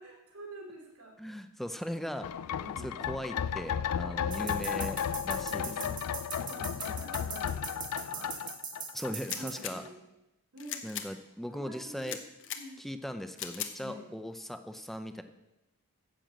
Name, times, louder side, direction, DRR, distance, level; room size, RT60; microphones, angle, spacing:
voice 1, 0.0-1.5 2.6-3.0 5.5-8.4 9.3-10.0 10.5-10.8 11.5-12.2 12.5-12.8 13.8-14.1, right 1 dB, 75° right, 0 dB, 2.9 m, -48 dB
voice 2, 1.2-2.3 2.8-5.9 8.9-9.8 10.8-12.2 12.8-15.2, equal, ahead, 8 dB, 0.5 m, -39 dB
sound 1, 2.2-9.6 9.9-10.0, left 8 dB, 80° left, 0.3 m, -34 dB
sound 2, 4.3-9.6, right 5 dB, 20° right, 1.4 m, -40 dB
sound 3, 9.2-9.7 10.6-11.1 12.0-12.6 13.4-13.7, left 9 dB, 55° left, 1.0 m, -38 dB
10.0 x 7.7 x 7.5 m, 0.97 s
head